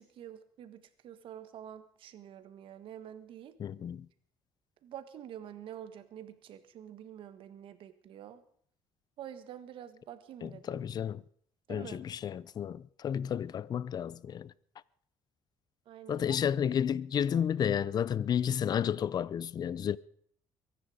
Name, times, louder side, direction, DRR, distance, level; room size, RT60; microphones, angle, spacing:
voice 1, 0.0-3.5 4.8-8.4 9.2-10.8 11.7-12.0 15.9-16.4 17.3-17.4, right 10 dB, 65° right, 1.6 m, -47 dB
voice 2, 3.6-4.1 10.4-11.2 11.7-14.5 16.1-20.0, left 8 dB, 45° left, 0.6 m, -31 dB
23.5 x 10.5 x 5.0 m
cardioid pair, 90°, 10 cm